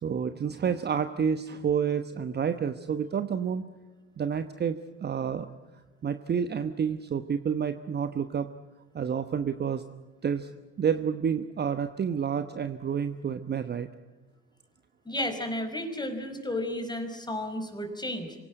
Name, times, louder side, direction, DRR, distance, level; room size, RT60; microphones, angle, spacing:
voice 1, 0.0-3.6 4.2-5.5 6.0-8.5 8.9-9.8 10.2-10.5 10.8-13.9, right 7 dB, 30° right, 10 dB, 1.1 m, -29 dB
voice 2, 15.0-18.4, left 1 dB, 10° left, 7 dB, 4.8 m, -33 dB
26.5 x 17.5 x 9.1 m, 1.2 s
figure-of-eight pair, 65°, 35 cm